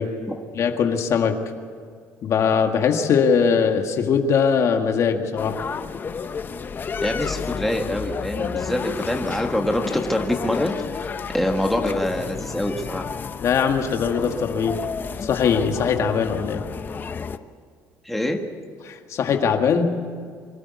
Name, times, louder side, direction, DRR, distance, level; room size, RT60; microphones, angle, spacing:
voice 1, 0.6-1.4 2.2-5.6 13.4-14.9 15.2-16.6 18.9-20.1, left 6 dB, 55° left, 5 dB, 1.8 m, -21 dB
sound 1, 5.4-17.4, left 6 dB, 30° left, 0.8 m, -31 dB
voice 2, 7.0-13.1 18.0-18.5, left 1 dB, 5° left, 2 dB, 1.7 m, -25 dB
24.5 x 13.5 x 8.4 m, 2.1 s
cardioid pair, 130°, 6 cm